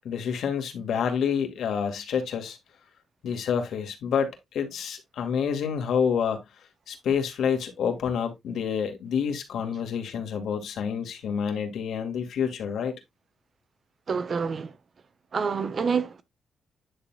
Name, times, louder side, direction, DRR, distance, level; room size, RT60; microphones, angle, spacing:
voice 1, 0.0-2.6 3.2-6.4 6.9-12.9, left 7 dB, 80° left, 2.3 m, -28 dB
voice 2, 14.1-14.8 15.3-16.2, right 5 dB, 45° right, 1.1 m, -27 dB
10.0 x 6.9 x 2.3 m
cardioid pair, 120°, 0 cm